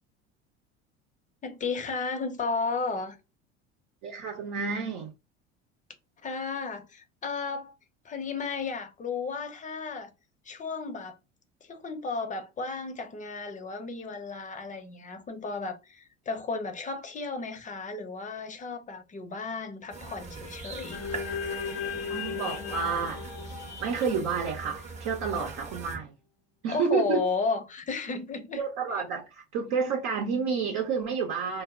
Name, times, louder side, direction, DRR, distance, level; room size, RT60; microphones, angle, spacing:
voice 1, 1.4-3.2 6.2-7.7 8.0-10.1 10.4-11.2 11.6-21.1 26.7-28.6, left 4 dB, 20° left, 0.6 m, -33 dB
voice 2, 4.0-5.1 22.1-23.2 23.8-26.1 26.6-27.3 28.6-31.6, right 5 dB, 55° right, 0.7 m, -30 dB
sound 1, 19.9-26.0, right 3 dB, 20° right, 0.7 m, -41 dB
sound 2, 20.9-25.2, left 6 dB, 70° left, 0.7 m, -36 dB
2.0 x 2.0 x 3.6 m
hypercardioid pair, 75°, 35 cm